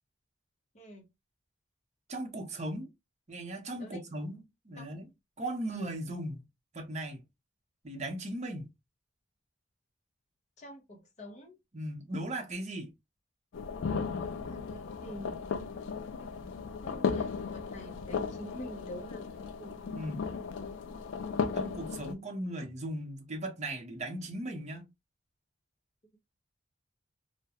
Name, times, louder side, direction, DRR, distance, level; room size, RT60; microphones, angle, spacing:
voice 1, 2.1-2.9 3.3-4.4 4.7-5.1 5.4-6.5 6.7-7.2 7.8-8.7 11.7-12.9 19.9-20.3 21.5-24.9, right 1 dB, 35° right, 0.7 m, -37 dB
voice 2, 10.6-11.6 14.2-15.4 16.8-19.7, equal, 40° left, 0.8 m, -46 dB
sound 1, 13.5-22.1, left 5 dB, 80° left, 0.4 m, -36 dB
2.3 x 2.1 x 2.8 m
head